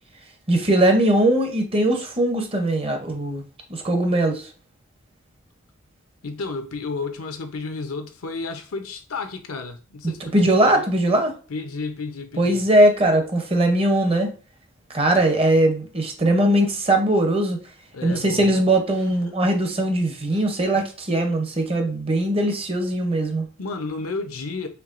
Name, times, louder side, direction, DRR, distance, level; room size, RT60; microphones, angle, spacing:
voice 1, 0.5-3.4 3.7-4.5 10.2-11.3 12.4-14.3 14.9-17.6 18.0-23.5, right 1 dB, 25° right, 0.7 m, -20 dB
voice 2, 6.2-10.3 10.7-10.9 11.5-12.6 17.9-18.6 20.3-20.4 23.6-24.7, left 3 dB, 85° left, 0.7 m, -32 dB
4.5 x 3.3 x 2.5 m
head